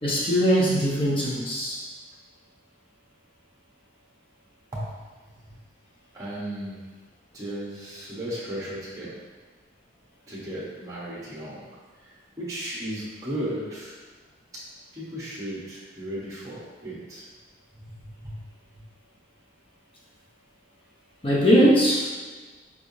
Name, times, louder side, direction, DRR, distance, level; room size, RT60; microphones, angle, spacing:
voice 1, 0.0-1.8 21.2-22.1, equal, 30° left, -5 dB, 0.8 m, -21 dB
voice 2, 6.1-6.8 7.3-9.2 10.3-11.6 12.0-13.9 14.9-17.3 17.7-18.4 18.7-18.8, right 1 dB, 20° right, -8 dB, 1.0 m, -35 dB
4.6 x 3.4 x 2.7 m, 1.4 s
head